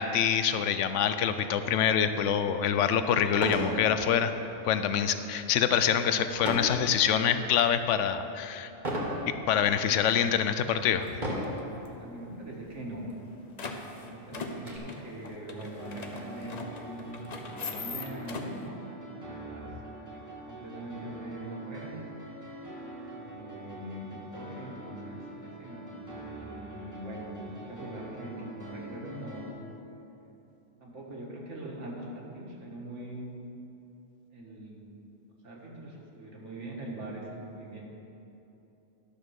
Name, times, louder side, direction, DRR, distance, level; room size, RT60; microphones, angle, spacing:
voice 1, 0.0-4.3 4.6-8.7 9.5-11.1, left 8 dB, 75° left, 10 dB, 0.9 m, -25 dB
sound 1, 2.4-2.5 3.3-3.8 4.2-4.5 6.4-6.8 7.4-7.8 8.8-9.2 9.9-10.0 11.1-11.6 12.6-12.8 13.1-13.2 13.6-14.8, equal, 35° right, 1.9 m, -33 dB
sound 2, 9.7-9.9 10.3-10.6 10.9-11.9 12.2-12.3 12.5-12.6 13.0-18.7, left 4 dB, 40° left, 0.7 m, -41 dB
voice 2, 11.9-13.1 13.9-18.7 19.1-19.7 20.1-22.0 23.1-29.5 30.8-33.3 34.3-34.9 35.4-37.8, right 1 dB, 70° right, -3 dB, 1.9 m, -42 dB
sound 3, 15.8-29.5, right 2 dB, 15° left, 1.5 m, -44 dB
12.0 x 6.5 x 6.3 m, 2.9 s
omnidirectional pair, 1.3 m